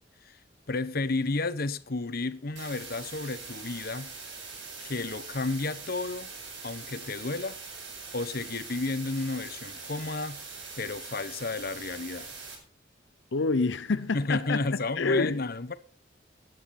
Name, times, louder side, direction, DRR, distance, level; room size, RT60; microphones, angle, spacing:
voice 1, 0.7-4.1 4.8-6.3 6.6-7.6 8.1-10.4 10.8-12.3 14.1-15.7, left 3 dB, 55° left, 1.0 m, -32 dB
sound 1, 2.6-12.6, right 4 dB, 70° right, 7.9 m, -43 dB
voice 2, 13.3-15.4, left 3 dB, 75° left, 0.7 m, -27 dB
19.0 x 11.0 x 4.3 m
head